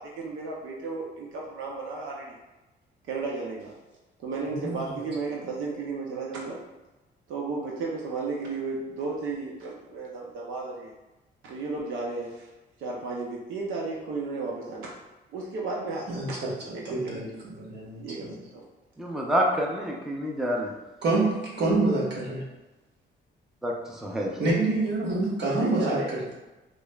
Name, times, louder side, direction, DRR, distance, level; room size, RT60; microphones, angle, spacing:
voice 1, 0.0-2.4 3.1-3.7 4.2-6.6 7.3-10.9 11.4-12.5 12.8-14.9 15.3-16.4 16.7-17.4 18.0-18.3 18.5-18.6 25.6-26.1, right 3 dB, 80° right, -2 dB, 0.6 m, -33 dB
voice 2, 16.1-18.3 21.0-22.4 24.4-26.3, right 2 dB, 60° right, -5 dB, 1.3 m, -27 dB
voice 3, 19.0-20.7 23.6-24.3, equal, ahead, -1 dB, 0.5 m, -27 dB
5.0 x 2.0 x 2.3 m, 1.1 s
cardioid pair, 90°, 20 cm